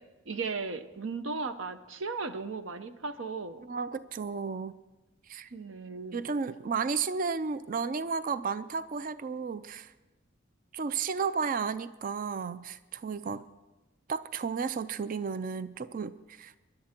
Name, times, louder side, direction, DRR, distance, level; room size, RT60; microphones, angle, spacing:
voice 1, 0.3-3.7 5.5-6.2, right 4 dB, 85° right, 10 dB, 0.9 m, -36 dB
voice 2, 3.6-4.8 5.3-5.5 6.1-9.9 10.7-13.4 14.1-16.5, right 5 dB, 45° right, 14 dB, 0.4 m, -33 dB
23.5 x 11.0 x 4.4 m, 1.1 s
head